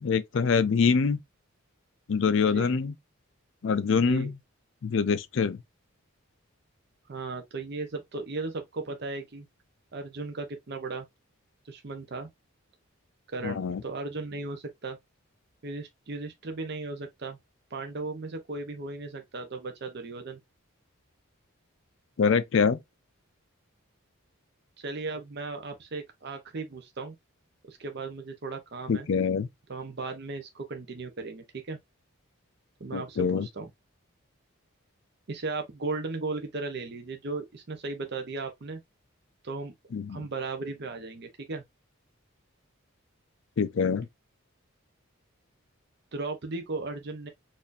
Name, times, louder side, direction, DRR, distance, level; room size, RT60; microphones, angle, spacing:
voice 1, 0.0-1.2 2.1-2.9 3.6-4.3 4.8-5.6 13.4-13.8 22.2-22.8 28.9-29.5 32.9-33.5 39.9-40.2 43.6-44.1, left 5 dB, 60° left, 0.4 m, -25 dB
voice 2, 2.4-2.8 4.0-4.3 7.1-9.5 9.9-11.0 11.6-12.3 13.3-15.0 15.6-17.4 17.7-20.4 24.8-27.2 27.7-29.1 29.7-31.8 32.8-33.7 35.3-38.8 39.4-39.7 40.1-41.6 46.1-47.3, right 3 dB, 50° right, 0.6 m, -36 dB
4.1 x 2.5 x 2.5 m
head